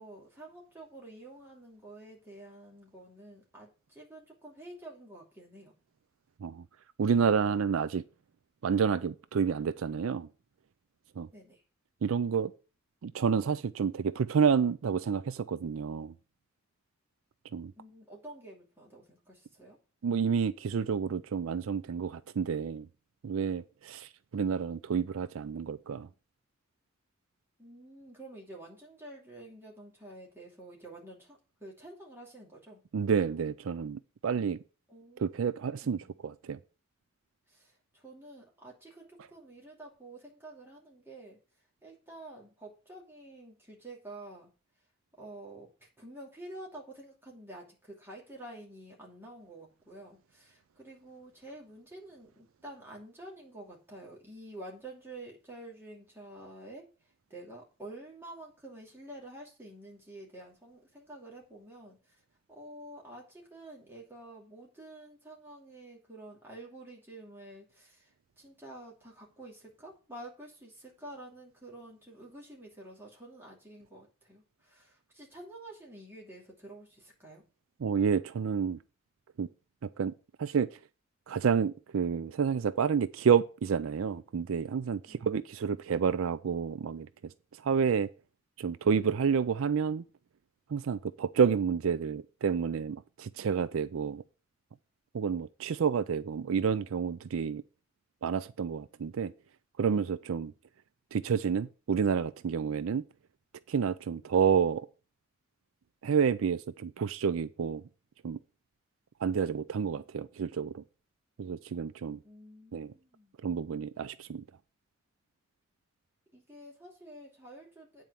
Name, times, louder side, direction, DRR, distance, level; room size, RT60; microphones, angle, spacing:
voice 1, 0.0-5.7 11.3-11.6 17.7-19.8 27.6-32.8 34.9-36.2 37.5-44.5 45.2-77.4 85.0-85.3 112.2-113.3 116.3-118.0, right 1 dB, 10° right, 2.6 m, -49 dB
voice 2, 7.0-8.0 8.6-10.3 11.2-11.3 12.0-12.5 13.0-16.1 17.5-17.7 20.0-22.9 23.2-26.1 32.9-34.6 35.2-36.6 77.8-78.8 79.4-79.5 79.8-80.1 80.4-80.8 81.3-87.3 87.6-88.1 88.6-90.0 90.7-94.2 95.1-97.6 98.2-99.3 99.8-100.5 101.1-103.0 103.7-104.9 106.0-107.8 108.2-108.4 109.2-110.8 111.4-112.2 112.7-112.9 113.4-114.4, right 6 dB, 75° right, 0.4 m, -29 dB
9.1 x 4.6 x 6.9 m
head